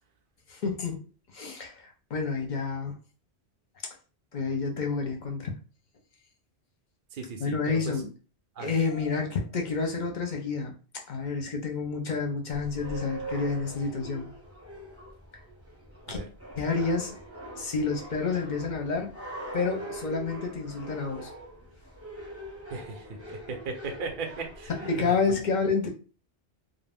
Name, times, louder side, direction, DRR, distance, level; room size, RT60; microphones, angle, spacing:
voice 1, 0.5-1.0 1.3-3.0 4.3-5.5 7.4-8.1 8.6-10.7 11.1-14.3 16.1-16.2 16.6-17.2 17.5-19.1 19.5-21.3 24.9-25.9, left 4 dB, 50° left, 2 dB, 0.7 m, -29 dB
voice 2, 7.1-7.9 8.6-8.7 16.1-16.3 22.7-24.7 25.0-25.1, right 4 dB, 60° right, 3 dB, 0.6 m, -37 dB
sound 1, 12.5-25.1, right 1 dB, 15° right, 0.5 m, -42 dB
2.4 x 2.0 x 3.4 m, 0.34 s
omnidirectional pair, 1.1 m